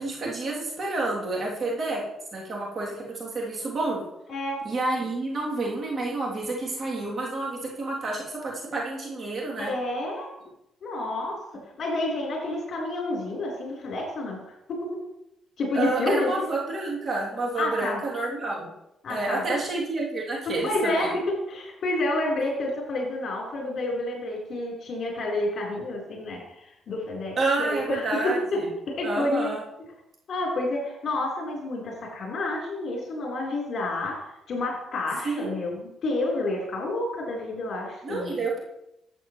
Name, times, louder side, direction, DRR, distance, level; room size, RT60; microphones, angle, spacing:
voice 1, 0.0-4.1 4.6-9.7 15.7-18.7 19.1-21.1 27.4-28.6 29.0-29.6 35.2-35.6 38.0-38.6, right 2 dB, 45° right, -3 dB, 2.9 m, -29 dB
voice 2, 9.6-10.3 10.8-11.4 11.8-14.4 14.7-14.9 15.6-16.5 17.5-18.0 19.0-19.6 20.5-21.1 21.5-29.5 30.3-34.2 34.5-38.4, left 2 dB, 55° left, -2 dB, 4.0 m, -29 dB
12.0 x 7.9 x 3.2 m, 0.83 s
cardioid pair, 90°, 0 cm